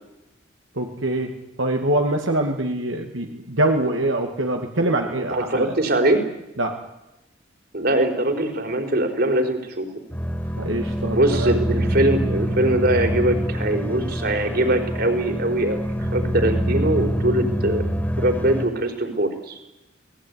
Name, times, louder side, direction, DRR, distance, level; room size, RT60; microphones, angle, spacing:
voice 1, 0.8-5.7 6.6-6.8 10.6-11.5, right 1 dB, 85° right, 3 dB, 2.4 m, -24 dB
voice 2, 5.3-6.2 7.7-9.9 11.1-17.8 18.1-19.6, right 1 dB, 55° right, 5 dB, 4.4 m, -22 dB
sound 1, 10.1-18.6, equal, 10° left, 2.8 m, -25 dB
29.5 x 19.5 x 9.8 m, 0.95 s
head